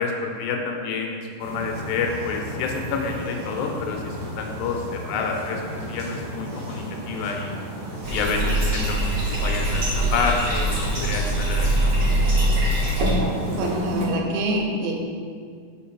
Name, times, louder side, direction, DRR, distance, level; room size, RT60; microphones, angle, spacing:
voice 1, 0.0-7.5 8.1-12.2, left 4 dB, 85° left, 2 dB, 2.8 m, -28 dB
sound 1, 1.4-14.0, equal, 65° right, 2.6 m, -32 dB
Bathtub (filling or washing), 8.0-13.1, right 1 dB, 45° right, 2.1 m, -23 dB
voice 2, 13.5-14.9, right 1 dB, 90° right, 0 dB, 3.2 m, -25 dB
5.8 x 4.5 x 5.9 m, 2.1 s
omnidirectional pair, 4.9 m